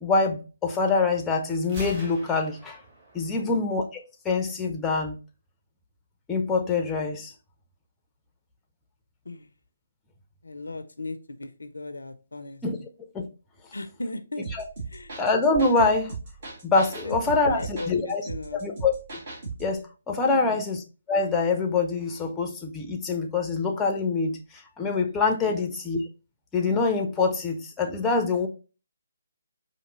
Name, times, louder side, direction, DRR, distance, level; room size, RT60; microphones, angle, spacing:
voice 1, 0.0-2.8 3.1-5.2 6.3-7.3 12.6-12.8 13.1-13.2 14.5-14.6 15.2-16.1 16.6-18.2 18.5-18.9 19.6-24.4 24.8-26.0 26.5-28.5, left 3 dB, 10° left, 0.6 m, -25 dB
Gunshot gunfire, 1.6-3.6, right 2 dB, 25° right, 1.8 m, -42 dB
voice 2, 3.3-3.7 9.3-9.5 10.4-12.6 13.7-14.5 14.9-15.2 17.0-17.1 17.5-18.6 20.3-20.6 25.4-25.7, left 2 dB, 75° left, 0.5 m, -37 dB
sound 1, 14.4-19.8, right 4 dB, 50° right, 2.0 m, -37 dB
5.0 x 2.7 x 2.9 m
figure-of-eight pair, 145°, 0 cm